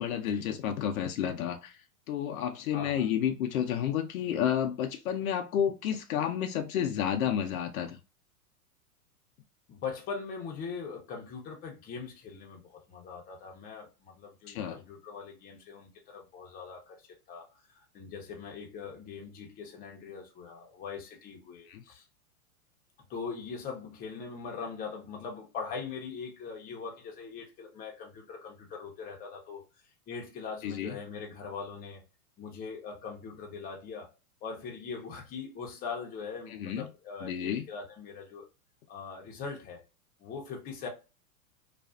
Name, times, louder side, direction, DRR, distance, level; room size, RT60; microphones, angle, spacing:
voice 1, 0.0-1.7 2.1-8.0 14.5-14.8 21.7-21.8 30.6-30.9 36.5-36.9 37.2-37.6, left 9 dB, 65° left, 0.6 m, -31 dB
voice 2, 2.7-3.1 9.7-17.5 17.7-22.0 23.1-29.7 30.1-32.0 32.4-34.1 34.4-38.5 38.9-39.8 40.2-40.9, left 5 dB, 20° left, 0.7 m, -41 dB
2.4 x 2.3 x 2.3 m
hypercardioid pair, 120°, 45 cm